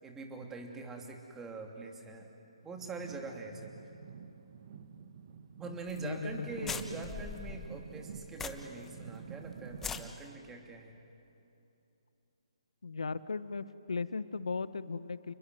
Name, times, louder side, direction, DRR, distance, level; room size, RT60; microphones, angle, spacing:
voice 1, 0.0-2.3 2.6-3.7 5.6-11.0, right 3 dB, 10° right, 2 dB, 2.8 m, -44 dB
sound 1, 2.7-10.1, right 6 dB, 45° right, 1.6 m, -48 dB
voice 2, 5.9-6.7 12.8-15.3, left 4 dB, 75° left, 15 dB, 1.2 m, -37 dB
sound 2, 5.9-6.0 6.3-6.4 6.6-8.9 9.2-9.3 9.7-10.0, left 6 dB, 10° left, 1.1 m, -41 dB
29.0 x 21.5 x 9.4 m, 2.8 s
figure-of-eight pair, 145°, 3 cm